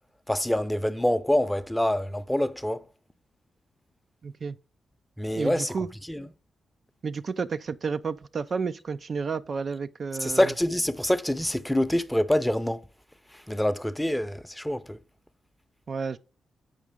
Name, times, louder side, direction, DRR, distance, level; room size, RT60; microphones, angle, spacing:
voice 1, 0.3-2.8 5.2-5.7 6.1-6.3 10.2-12.8 13.5-15.0, left 1 dB, 10° left, 0.6 m, -26 dB
voice 2, 4.2-4.6 5.4-5.9 7.0-10.5 15.9-16.2, right 5 dB, 60° right, 0.3 m, -31 dB
7.3 x 4.9 x 3.6 m
hypercardioid pair, 40°, 0 cm